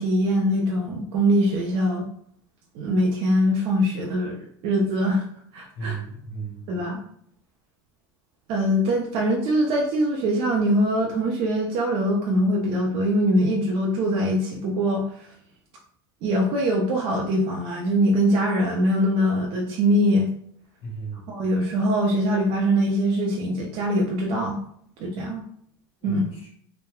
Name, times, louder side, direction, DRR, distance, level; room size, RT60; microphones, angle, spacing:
voice 1, 0.0-2.0 2.8-4.4 4.6-5.2 5.5-6.0 6.7-7.0 8.5-15.0 16.2-20.3 21.3-24.6 25.0-25.4 26.0-26.2, equal, 50° right, -1 dB, 0.5 m, -22 dB
voice 2, 5.8-6.6 20.8-21.2 26.0-26.5, right 5 dB, 40° left, -3 dB, 1.3 m, -35 dB
3.0 x 2.0 x 2.2 m, 0.63 s
supercardioid pair, 145°, 13 cm